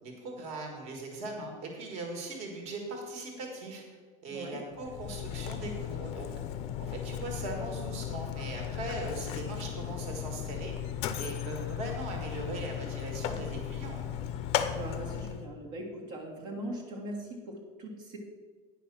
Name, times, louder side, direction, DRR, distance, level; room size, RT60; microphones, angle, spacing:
voice 1, 0.0-3.8 4.2-6.3 6.8-10.7 11.2-14.1, right 2 dB, 40° right, 2 dB, 1.7 m, -40 dB
voice 2, 4.3-4.6 5.6-5.7 14.7-18.2, right 1 dB, 55° right, -1 dB, 1.6 m, -40 dB
Mechanisms, 4.7-15.5, left 10 dB, 35° left, 0.5 m, -36 dB
9.8 x 5.5 x 6.0 m, 1.5 s
cardioid pair, 175°, 17 cm